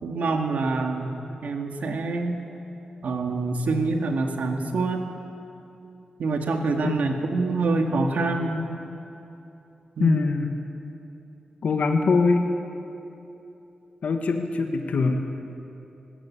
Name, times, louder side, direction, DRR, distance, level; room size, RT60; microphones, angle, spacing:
voice 1, 0.0-1.1 1.4-2.4 3.0-5.0 6.2-8.7 10.0-10.3, right 3 dB, 80° right, 3 dB, 2.0 m, -26 dB
voice 2, 10.0-10.5 11.6-12.5 14.0-15.2, left 4 dB, 70° left, 4 dB, 1.5 m, -23 dB
19.0 x 16.0 x 8.9 m, 2.9 s
cardioid pair, 85°, 3 cm